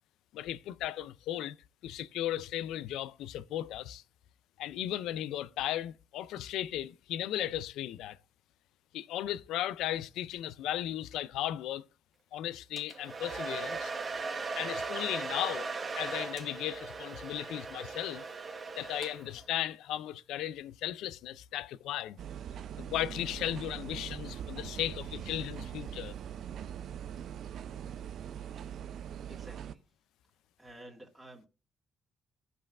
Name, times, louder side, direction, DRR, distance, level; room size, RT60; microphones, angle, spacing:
voice 1, 0.3-1.6 1.8-4.0 4.6-8.2 8.9-11.8 12.3-13.9 14.5-18.2 18.8-22.2 22.9-26.1, left 12 dB, 90° left, 0.3 m, -36 dB
Domestic sounds home sounds, 12.8-19.5, right 4 dB, 35° right, 1.1 m, -38 dB
sound 1, 22.2-29.7, right 9 dB, 70° right, 0.4 m, -42 dB
voice 2, 29.3-29.8 30.6-31.5, right 1 dB, 5° right, 1.8 m, -51 dB
15.5 x 5.3 x 2.4 m
cardioid pair, 90°, 0 cm